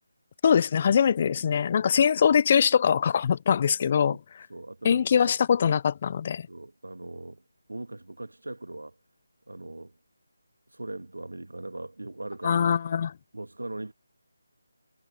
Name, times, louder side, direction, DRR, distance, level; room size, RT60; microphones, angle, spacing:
voice 1, 0.4-4.2 4.8-6.5 12.4-13.1, left 7 dB, 35° left, 0.3 m, -22 dB
voice 2, 4.5-5.4 6.5-7.4 7.7-9.0 9.5-10.0 10.7-12.6 13.3-13.9, right 2 dB, 90° right, 2.0 m, -39 dB
figure-of-eight pair, 160°, 0 cm